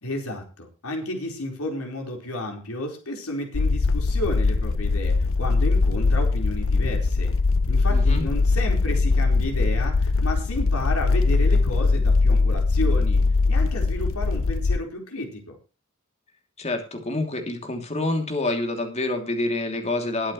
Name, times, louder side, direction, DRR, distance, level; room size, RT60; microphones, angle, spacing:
voice 1, 0.0-7.3 7.7-13.2 13.5-15.6, left 1 dB, 80° left, 2 dB, 4.5 m, -32 dB
sound 1, 3.5-14.8, left 3 dB, 65° left, 0.6 m, -21 dB
voice 2, 7.9-8.3 16.6-20.3, left 2 dB, 30° left, 5 dB, 2.9 m, -27 dB
21.0 x 8.6 x 3.2 m, 0.32 s
head